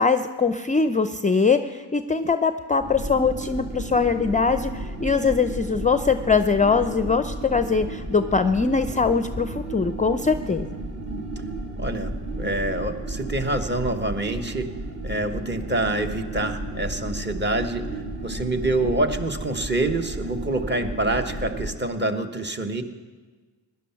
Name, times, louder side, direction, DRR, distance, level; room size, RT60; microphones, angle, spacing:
voice 1, 0.0-10.7, left 5 dB, 20° left, 9 dB, 0.4 m, -22 dB
sound 1, 2.8-21.7, right 2 dB, 45° right, 2.7 m, -33 dB
voice 2, 11.8-14.7 15.0-17.9 18.2-22.8, right 2 dB, 25° right, 5 dB, 1.3 m, -26 dB
16.5 x 11.0 x 5.9 m, 1.4 s
cardioid pair, 75°, 42 cm